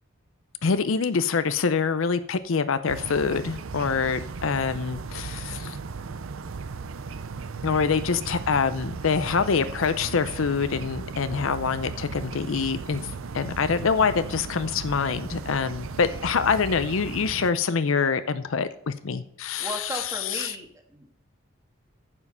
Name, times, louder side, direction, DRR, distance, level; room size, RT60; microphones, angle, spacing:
voice 1, 0.6-5.8 7.6-13.0 13.3-20.0 20.3-20.5, left 5 dB, 75° left, 12 dB, 0.6 m, -25 dB
sound 1, 2.9-17.5, right 4 dB, 80° right, 0.6 m, -36 dB
voice 2, 19.6-21.1, right 1 dB, 15° right, 3 dB, 1.5 m, -36 dB
9.8 x 7.3 x 5.5 m, 0.72 s
head